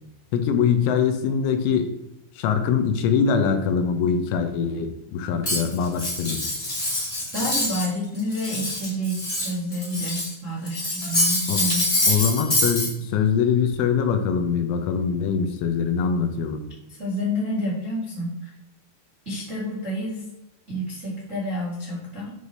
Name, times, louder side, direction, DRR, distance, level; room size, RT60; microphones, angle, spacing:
voice 1, 0.3-1.9 2.4-6.4 11.5-11.6 12.1-16.6, left 6 dB, 80° left, 6 dB, 3.0 m, -23 dB
Cutlery silverware, 5.4-7.9 8.2-10.3 10.7-12.9, left 1 dB, 20° left, 1.3 m, -25 dB
voice 2, 7.3-11.9 16.9-18.3 19.2-20.2 20.7-22.3, equal, 90° right, -8 dB, 0.6 m, -29 dB
9.6 x 3.3 x 5.3 m, 0.94 s
omnidirectional pair, 5.9 m